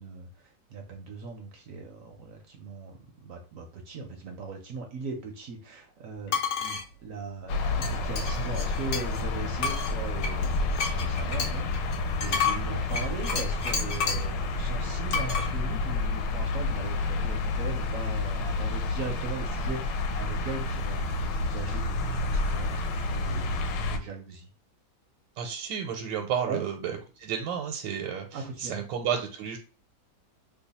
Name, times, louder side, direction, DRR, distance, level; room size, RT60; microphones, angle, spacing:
voice 1, 0.0-24.5 26.4-26.6 28.3-28.8, right 4 dB, 65° right, 3 dB, 0.8 m, -39 dB
sound 1, 6.3-6.8 7.8-9.2 9.6-14.3 15.1-15.5, left 6 dB, 60° left, 0.8 m, -31 dB
sound 2, 7.5-24.0, left 3 dB, 80° left, 1.2 m, -30 dB
voice 2, 25.4-29.6, right 8 dB, 85° right, 2 dB, 1.3 m, -32 dB
3.0 x 2.2 x 4.0 m, 0.34 s
omnidirectional pair, 2.0 m